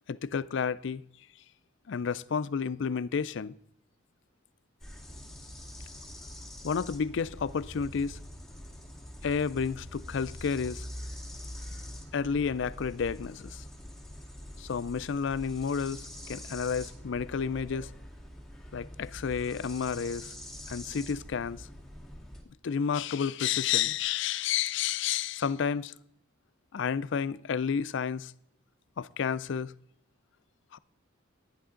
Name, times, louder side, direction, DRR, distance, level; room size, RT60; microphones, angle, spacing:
voice 1, 0.1-1.0 1.9-3.5 6.6-8.2 9.2-10.8 12.1-13.6 14.6-17.9 18.7-20.3 20.7-21.7 22.6-25.9 26.7-28.3 29.0-29.7 30.7-30.8, left 6 dB, 65° left, 0.4 m, -31 dB
sound 1, 4.8-22.4, left 1 dB, ahead, 2.1 m, -44 dB
11.0 x 10.5 x 3.8 m
head